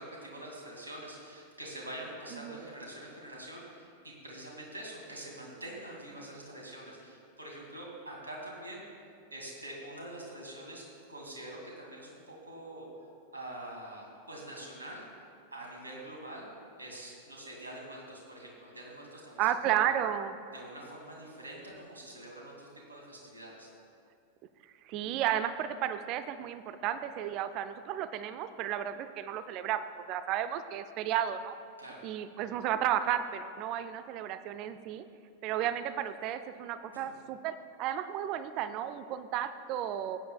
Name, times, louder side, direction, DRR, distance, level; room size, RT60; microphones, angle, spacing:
voice 1, 0.0-8.8 9.3-12.9 13.3-15.2 15.5-16.5 16.8-19.9 20.5-23.7 31.8-32.0 36.9-37.1, right 1 dB, 75° right, -2 dB, 2.2 m, -45 dB
voice 2, 19.4-20.4 24.8-31.6 32.0-35.0 35.4-40.2, right 10 dB, 40° right, 11 dB, 0.4 m, -33 dB
17.0 x 9.3 x 2.3 m, 2.4 s
figure-of-eight pair, 90°, 0 cm